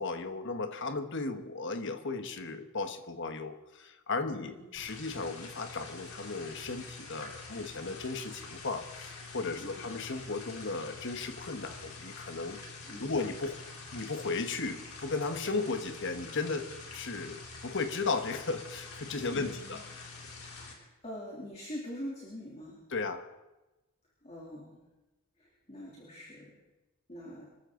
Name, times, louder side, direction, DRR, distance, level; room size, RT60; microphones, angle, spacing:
voice 1, 0.0-13.6 13.9-19.8 22.9-23.2, left 3 dB, 55° left, 8 dB, 1.4 m, -35 dB
voice 2, 4.4-4.7 9.6-10.0 12.8-13.2 19.3-19.8 20.6-22.8 24.2-24.8 25.4-26.6 27.1-27.5, equal, 30° left, -3 dB, 3.0 m, -44 dB
sound 1, 4.8-20.7, left 3 dB, 85° left, 3.5 m, -46 dB
25.0 x 14.0 x 3.9 m, 1.1 s
head